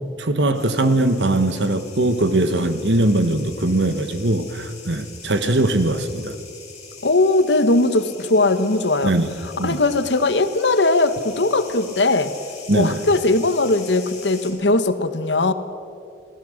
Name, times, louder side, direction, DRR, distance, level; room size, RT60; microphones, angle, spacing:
voice 1, 0.2-6.3 9.0-9.3 9.6-9.8 12.7-13.0, right 1 dB, 85° right, 10 dB, 1.5 m, -20 dB
sound 1, 0.5-14.5, left 5 dB, 35° left, 7.3 m, -42 dB
voice 2, 7.0-9.1 9.6-12.3 12.7-15.5, left 2 dB, 85° left, 11 dB, 1.3 m, -19 dB
27.5 x 18.5 x 6.6 m, 2.5 s
head